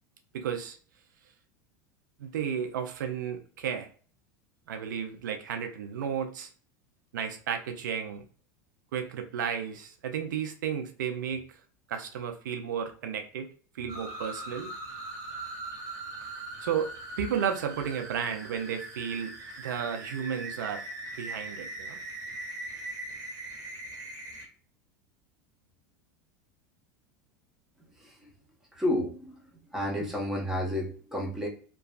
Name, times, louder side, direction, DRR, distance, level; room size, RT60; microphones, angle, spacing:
voice 1, 0.3-0.8 2.2-3.9 4.7-6.5 7.1-8.2 8.9-11.4 11.9-13.5 13.7-14.7 16.6-16.9 17.2-20.8 21.2-22.0, right 8 dB, 85° right, 5 dB, 0.5 m, -33 dB
sound 1, 13.9-24.5, right 2 dB, 35° right, 1.2 m, -41 dB
voice 2, 28.7-29.3 29.7-31.5, left 1 dB, 5° right, -3 dB, 1.1 m, -30 dB
3.0 x 2.3 x 2.3 m, 0.42 s
hypercardioid pair, 100°, 10 cm